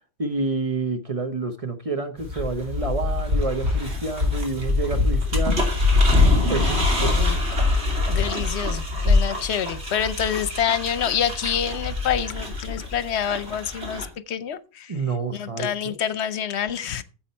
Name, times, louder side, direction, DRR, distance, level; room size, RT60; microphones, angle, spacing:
voice 1, 0.2-5.6 6.5-7.2 14.9-15.9, right 3 dB, 35° right, 0.9 m, -28 dB
sound 1, 2.2-14.0, left 2 dB, 70° right, 2.9 m, -23 dB
voice 2, 6.6-7.4 8.1-14.9 15.3-17.0, left 9 dB, 75° left, 1.0 m, -27 dB
9.6 x 7.4 x 4.3 m
omnidirectional pair, 1.1 m